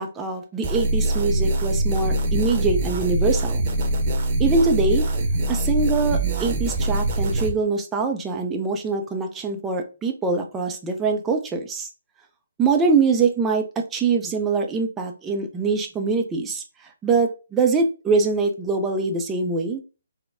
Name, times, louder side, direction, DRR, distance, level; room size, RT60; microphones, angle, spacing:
voice 1, 0.0-3.6 4.4-5.1 5.5-11.9 12.6-13.6 13.9-16.6 17.0-19.8, right 4 dB, 10° right, 3 dB, 0.5 m, -23 dB
sound 1, 0.6-7.5, right 1 dB, 30° right, 0.8 m, -23 dB
3.8 x 2.1 x 3.6 m, 0.33 s
figure-of-eight pair, 140°, 0 cm